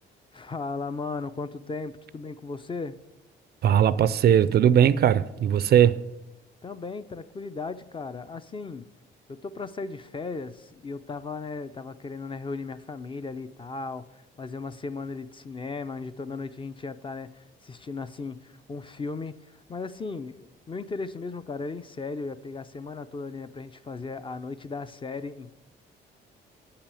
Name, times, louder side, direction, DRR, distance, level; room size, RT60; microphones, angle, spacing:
voice 1, 0.3-2.9 6.6-8.8 9.3-25.5, left 4 dB, 25° left, 0.5 m, -36 dB
voice 2, 3.6-6.0, right 9 dB, 55° right, 0.4 m, -19 dB
8.3 x 5.7 x 6.9 m
cardioid pair, 90°, 20 cm